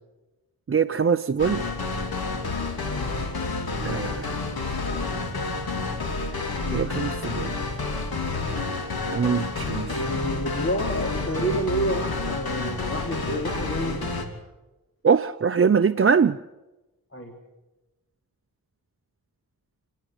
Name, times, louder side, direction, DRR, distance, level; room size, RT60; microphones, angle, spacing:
voice 1, 0.7-1.6 3.8-4.4 6.7-7.6 9.1-10.0 15.0-16.4, right 6 dB, 40° right, 0.6 m, -22 dB
sound 1, 1.4-14.2, left 3 dB, 85° left, 3.2 m, -29 dB
voice 2, 9.9-14.1 17.1-17.4, right 1 dB, 35° left, 3.2 m, -29 dB
29.5 x 10.5 x 9.6 m
cardioid pair, 60°, 36 cm